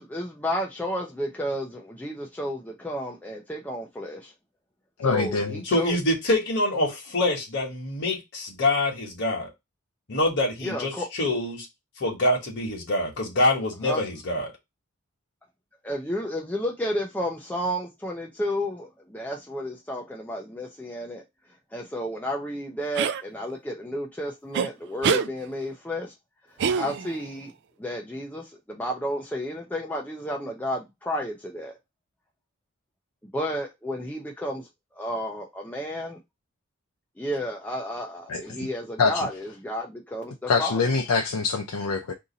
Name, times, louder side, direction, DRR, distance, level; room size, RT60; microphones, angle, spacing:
voice 1, 0.0-4.3 5.0-6.0 10.6-11.1 13.8-14.0 15.8-21.2 21.7-26.1 26.7-27.5 27.8-31.8 33.3-34.7 35.0-36.2 37.2-40.8, equal, 5° left, 0.5 m, -32 dB
voice 2, 5.0-5.6 38.3-38.7 39.0-39.3 40.5-42.1, left 4 dB, 85° left, 0.5 m, -25 dB
voice 3, 5.7-9.5 10.1-10.9 11.2-11.7 12.0-14.5, left 1 dB, 55° left, 1.2 m, -25 dB
sound 1, 23.0-23.2 24.5-24.7 25.0-25.3 26.6-27.3, right 6 dB, 55° right, 0.3 m, -24 dB
2.7 x 2.6 x 3.9 m
head